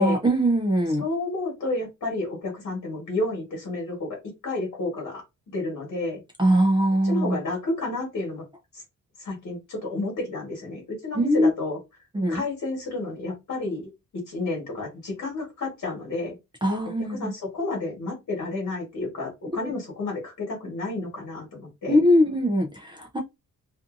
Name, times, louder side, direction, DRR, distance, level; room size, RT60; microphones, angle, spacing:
voice 1, 0.0-1.0 6.4-7.4 11.2-11.5 12.1-12.4 16.6-17.3 21.9-23.2, equal, 15° right, 0.4 m, -21 dB
voice 2, 1.0-4.2 4.4-5.2 5.5-6.2 7.0-8.4 8.7-8.8 9.2-11.8 12.3-13.9 14.3-16.3 17.1-22.0, left 2 dB, 60° left, 1.3 m, -30 dB
2.6 x 2.5 x 2.4 m
wide cardioid pair, 170°, 33 cm